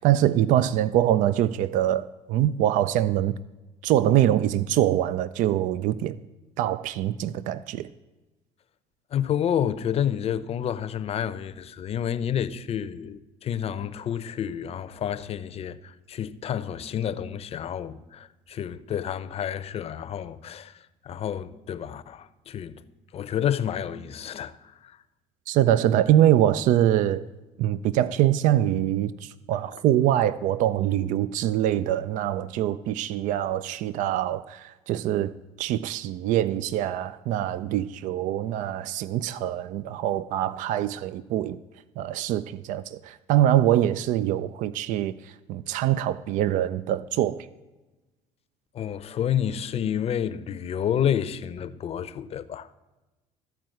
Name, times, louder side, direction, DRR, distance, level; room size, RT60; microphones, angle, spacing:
voice 1, 0.0-3.4 3.8-6.2 6.6-7.9 25.5-27.3 27.6-41.6 42.0-47.5, right 12 dB, 65° right, 0.4 m, -24 dB
voice 2, 9.1-20.8 21.0-22.8 23.1-25.0 48.7-52.7, left 9 dB, 45° left, 0.6 m, -29 dB
13.5 x 4.6 x 7.7 m
supercardioid pair, 75°, 14 cm